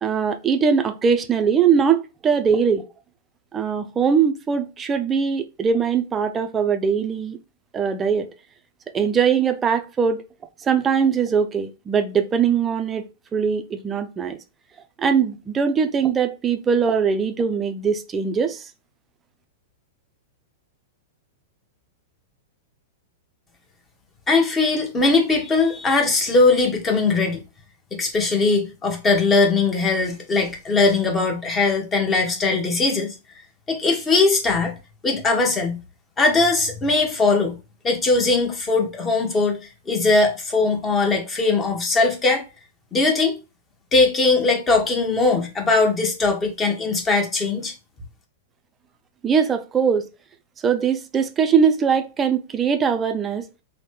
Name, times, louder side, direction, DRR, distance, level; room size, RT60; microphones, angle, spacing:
voice 1, 0.0-2.8 3.5-7.4 7.7-8.3 8.9-10.2 10.6-13.0 13.3-14.4 15.0-18.7 49.2-50.1 50.6-53.5, right 6 dB, 20° right, 0.4 m, -21 dB
voice 2, 24.3-27.4 27.9-33.1 33.7-34.8 35.0-35.8 36.2-37.6 37.8-42.4 42.9-43.4 43.9-47.7, left 3 dB, 20° left, 0.8 m, -20 dB
3.1 x 2.1 x 3.1 m
figure-of-eight pair, 100°, 0 cm